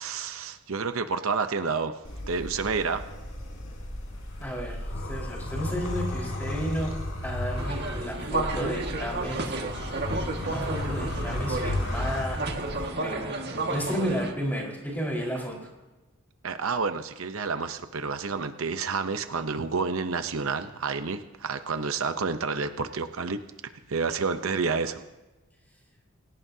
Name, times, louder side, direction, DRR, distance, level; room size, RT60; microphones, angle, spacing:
voice 1, 0.0-1.9 2.3-3.0 16.4-23.4 23.9-25.0, right 4 dB, 70° right, 9 dB, 0.8 m, -29 dB
sound 1, 2.0-12.9, left 1 dB, 80° left, 3.9 m, -34 dB
voice 2, 4.4-6.9 7.2-9.5 10.4-12.4 13.0-15.5, equal, 10° left, -2 dB, 4.5 m, -32 dB
sound 2, 7.6-14.3, right 2 dB, 50° right, 1.8 m, -32 dB
28.0 x 17.0 x 2.8 m, 1.1 s
head